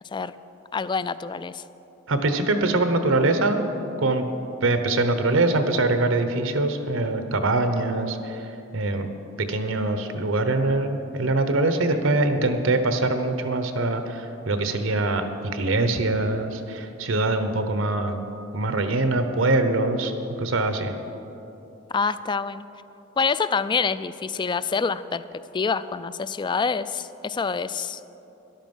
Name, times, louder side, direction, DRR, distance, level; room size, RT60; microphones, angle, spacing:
voice 1, 0.7-1.6 21.9-22.7 23.2-25.2 25.5-28.0, left 5 dB, 25° left, 15 dB, 0.3 m, -26 dB
voice 2, 2.1-3.6 4.0-4.3 4.6-9.1 9.4-15.3 15.5-18.2 18.5-20.1 20.4-20.9, right 2 dB, 85° right, 8 dB, 1.0 m, -23 dB
13.5 x 11.5 x 5.4 m, 2.9 s
head